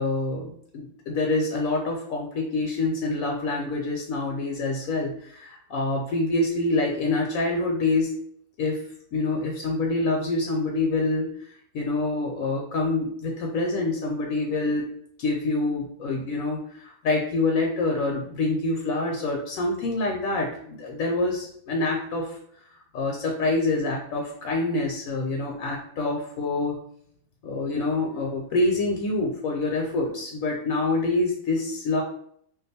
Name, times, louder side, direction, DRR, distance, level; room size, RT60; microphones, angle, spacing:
voice 1, 0.0-8.2 8.6-8.8 9.1-11.5 11.7-14.8 15.2-22.4 22.9-26.7 27.4-32.0, left 2 dB, 75° left, 0 dB, 1.0 m, -26 dB
2.5 x 2.3 x 4.0 m, 0.66 s
omnidirectional pair, 1.5 m